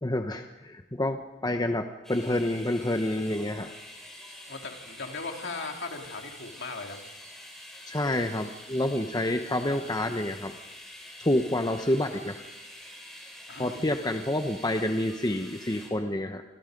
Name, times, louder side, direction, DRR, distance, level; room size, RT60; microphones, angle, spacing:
voice 1, 0.0-3.7 7.9-10.5 11.2-12.4 13.6-16.4, left 1 dB, 20° left, 6 dB, 1.0 m, -28 dB
sound 1, 2.0-15.9, equal, ahead, 6.1 m, -46 dB
voice 2, 4.5-7.0 13.5-13.8, left 3 dB, 60° left, 2 dB, 3.5 m, -38 dB
29.0 x 25.5 x 5.3 m, 1.1 s
head